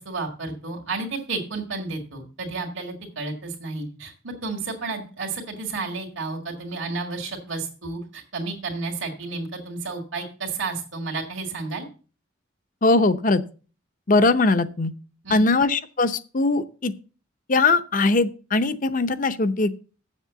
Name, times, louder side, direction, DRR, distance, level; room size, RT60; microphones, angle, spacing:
voice 1, 0.0-11.9 15.2-15.6, right 3 dB, 65° right, -1 dB, 2.1 m, -32 dB
voice 2, 12.8-13.4 14.1-14.9 15.3-16.9 17.5-19.7, left 3 dB, 40° left, 11 dB, 0.7 m, -20 dB
7.4 x 7.1 x 6.9 m, 0.38 s
head